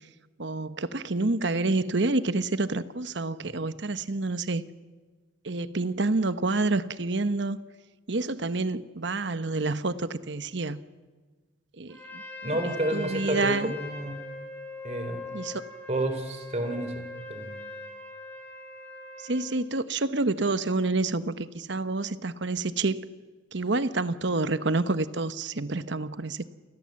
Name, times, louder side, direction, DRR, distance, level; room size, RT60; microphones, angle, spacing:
voice 1, 0.4-4.6 5.4-7.6 8.1-10.8 11.8-12.2 12.6-13.7 15.3-15.6 19.2-23.0 23.5-26.5, right 3 dB, 60° right, 13 dB, 1.0 m, -28 dB
Trumpet, 11.9-19.5, left 2 dB, 10° left, 4.3 m, -41 dB
voice 2, 12.4-14.2 14.8-15.2 15.9-16.9 17.3-17.6, right 1 dB, 35° right, 7 dB, 3.7 m, -30 dB
28.5 x 20.5 x 7.7 m, 1.4 s
head